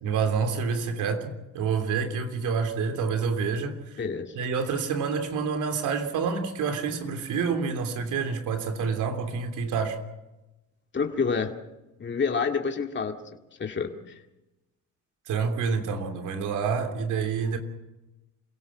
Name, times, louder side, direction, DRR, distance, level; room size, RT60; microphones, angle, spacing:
voice 1, 0.0-3.8 4.3-10.0 15.3-17.6, right 5 dB, 85° right, 3.2 m, -28 dB
voice 2, 4.0-4.3 10.9-11.5 12.0-13.2 13.6-14.1, left 5 dB, 40° left, 2.2 m, -28 dB
27.5 x 17.0 x 7.2 m
cardioid pair, 90°, 30 cm